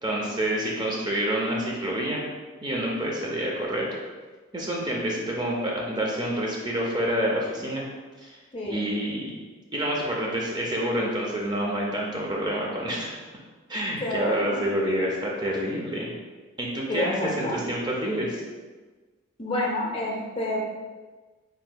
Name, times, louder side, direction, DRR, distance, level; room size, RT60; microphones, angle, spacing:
voice 1, 0.0-2.2 2.6-3.9 4.5-7.9 8.2-8.4 8.6-9.4 9.7-13.1 13.7-16.1 16.6-18.4, right 1 dB, 20° right, -2 dB, 0.5 m, -28 dB
voice 2, 8.5-8.9 14.0-14.6 16.9-17.6 19.4-20.6, left 1 dB, 25° left, -2 dB, 0.6 m, -29 dB
4.3 x 3.7 x 2.2 m, 1.3 s
head